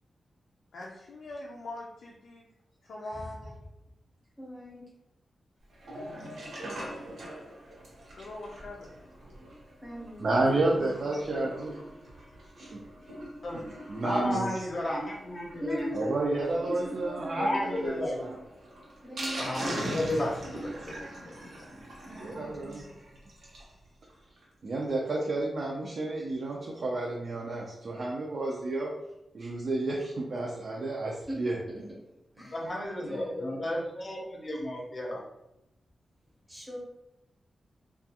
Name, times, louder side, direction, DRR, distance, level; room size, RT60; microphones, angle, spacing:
voice 1, 0.7-2.4 2.8-3.4 6.9-7.1 8.2-8.9, left 2 dB, 90° left, -2 dB, 0.4 m, -42 dB
voice 2, 3.0-3.6 4.4-4.9 9.8-11.6 15.6-18.4 19.0-19.7 22.0-23.0 31.3-31.8 32.3-32.8 33.0-34.2 36.5-36.8, equal, 5° right, -4 dB, 0.7 m, -41 dB
Sink (filling or washing), 5.7-23.7 24.1-24.2 24.4-24.5 24.8-24.9, right 1 dB, 85° right, 0.8 m, -42 dB
voice 3, 10.2-11.8 12.6-12.8 13.5-13.6 13.9-14.6 15.9-18.3 22.1-22.9 24.6-28.9 29.3-31.5, right 2 dB, 55° right, -2 dB, 0.4 m, -31 dB
voice 4, 14.0-15.9 17.4-18.2 19.4-21.0 21.3-21.4 32.4-35.2, left 1 dB, 40° left, -2 dB, 0.6 m, -32 dB
2.3 x 2.2 x 2.8 m, 0.89 s
wide cardioid pair, 130°, 0 cm